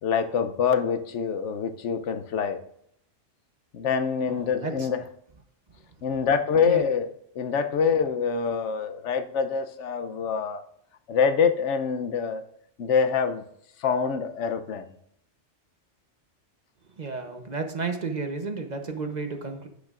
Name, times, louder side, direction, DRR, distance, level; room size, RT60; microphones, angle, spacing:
voice 1, 0.0-2.6 3.7-5.0 6.0-7.1 7.4-10.6 11.1-12.4 12.8-13.4 13.8-14.8, left 6 dB, 80° left, 9 dB, 1.0 m, -25 dB
voice 2, 4.3-4.9 6.6-6.9 17.0-19.7, right 4 dB, 40° right, 6 dB, 0.9 m, -32 dB
10.0 x 8.4 x 2.5 m, 0.71 s
omnidirectional pair, 1.2 m